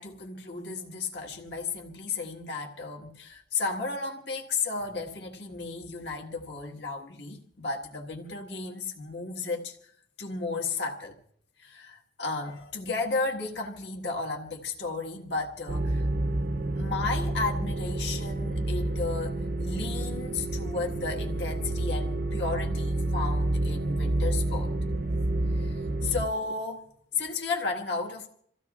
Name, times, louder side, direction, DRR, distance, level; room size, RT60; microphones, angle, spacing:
voice 1, 0.0-9.8 10.2-11.2 11.6-16.1 16.7-24.7 25.5-26.9 27.1-28.3, left 4 dB, 75° left, 1.6 m, -33 dB
sound 1, 15.7-26.3, right 2 dB, 60° right, 0.6 m, -29 dB
28.0 x 15.5 x 2.4 m
head